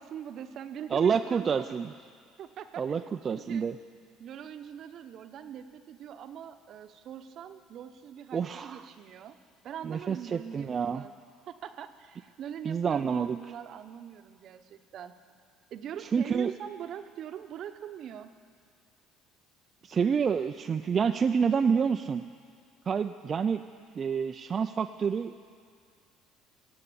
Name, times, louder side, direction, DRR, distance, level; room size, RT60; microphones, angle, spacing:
voice 1, 0.0-1.6 2.4-3.7 4.2-9.4 9.6-11.1 11.5-15.1 15.7-18.3, right 9 dB, 55° right, 9 dB, 0.8 m, -42 dB
voice 2, 0.9-1.9 2.8-3.8 8.3-8.9 9.8-11.0 12.6-13.4 16.1-16.5 19.8-22.2 22.9-23.6 24.0-25.3, right 6 dB, 35° right, 7 dB, 0.4 m, -28 dB
18.0 x 7.7 x 8.5 m, 2.1 s
supercardioid pair, 95°, 0 cm